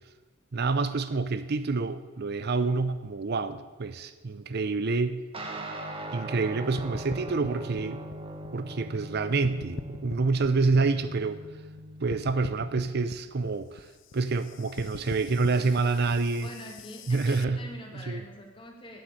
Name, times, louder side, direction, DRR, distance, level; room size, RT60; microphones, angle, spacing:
voice 1, 0.5-5.2 6.1-8.0 8.5-11.4 12.0-13.9 14.1-16.5 17.1-17.6 17.9-18.2, right 3 dB, 55° right, 12 dB, 0.6 m, -27 dB
sound 1, 5.3-13.1, right 1 dB, 30° right, 1.3 m, -40 dB
sound 2, 6.8-9.1 9.4-11.8 12.1-17.5, left 5 dB, 65° left, 0.4 m, -43 dB
voice 2, 15.6-16.1 16.4-19.0, left 1 dB, 25° left, 2 dB, 1.9 m, -45 dB
9.3 x 7.9 x 8.7 m, 1.3 s
head